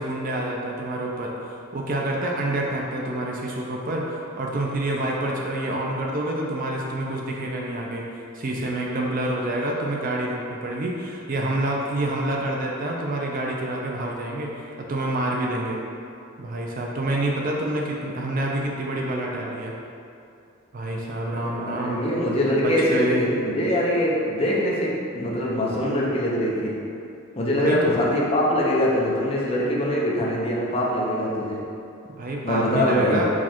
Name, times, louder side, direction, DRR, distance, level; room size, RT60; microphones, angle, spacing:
voice 1, 0.0-8.0 8.3-14.5 14.8-15.8 16.4-19.7 20.7-22.0 22.6-23.3 27.6-28.0 32.2-33.3, right 1 dB, 40° right, -1 dB, 0.5 m, -27 dB
voice 2, 21.3-26.7 27.4-31.6 32.4-33.2, equal, 30° left, -4 dB, 0.6 m, -23 dB
4.7 x 2.3 x 4.3 m, 2.5 s
head